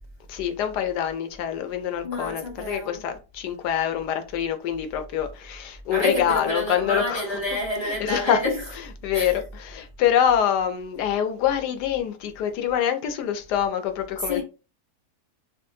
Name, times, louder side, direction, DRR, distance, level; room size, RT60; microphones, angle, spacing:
voice 1, 0.3-7.2 7.8-8.4 9.0-14.4, left 9 dB, 85° left, 1.2 m, -25 dB
voice 2, 2.0-3.0 5.9-8.6 9.1-9.4 14.2-14.4, equal, 20° left, 0.8 m, -29 dB
5.1 x 2.1 x 2.7 m
omnidirectional pair, 1.7 m